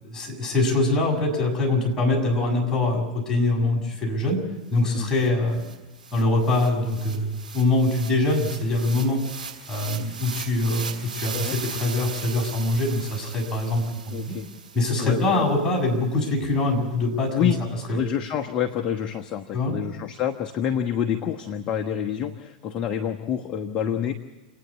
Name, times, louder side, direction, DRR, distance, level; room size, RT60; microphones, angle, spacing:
voice 1, 0.0-4.4 4.7-5.7 6.1-9.2 9.7-14.4 14.7-17.5 17.9-18.0 19.5-19.8, left 2 dB, 15° left, -2 dB, 7.1 m, -23 dB
sound 1, 4.8-4.9 5.1-15.5, right 5 dB, 85° right, 3.7 m, -38 dB
voice 2, 14.1-14.5 15.0-15.5 17.3-17.6 17.9-24.1, left 9 dB, 30° left, 3 dB, 1.2 m, -27 dB
28.5 x 9.7 x 9.8 m, 1.2 s
figure-of-eight pair, 95°, 4 cm